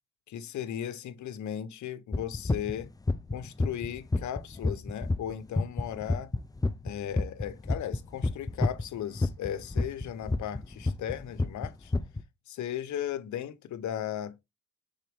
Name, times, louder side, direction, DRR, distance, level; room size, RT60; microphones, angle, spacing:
voice 1, 0.3-2.9 3.3-6.3 6.8-11.9 12.5-14.4, left 10 dB, 70° left, 1.0 m, -36 dB
sound 1, 2.1-8.9 9.2-12.2, left 2 dB, 10° left, 0.5 m, -28 dB
6.5 x 4.2 x 3.6 m
cardioid pair, 90°, 30 cm